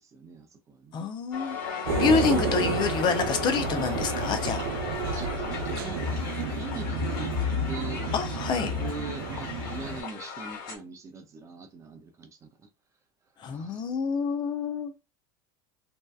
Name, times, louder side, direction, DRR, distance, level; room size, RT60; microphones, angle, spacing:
voice 1, 0.0-1.0 5.0-8.1 8.8-12.7 13.4-13.9, right 4 dB, 25° right, 0.5 m, -42 dB
voice 2, 0.9-4.6 8.1-8.7 13.4-14.9, left 5 dB, 40° left, 0.5 m, -27 dB
Crowd, 1.3-10.8, left 6 dB, 75° left, 1.1 m, -38 dB
sound 1, 1.8-10.0, right 2 dB, 80° right, 0.6 m, -30 dB
2.7 x 2.1 x 2.3 m
supercardioid pair, 115°, 12 cm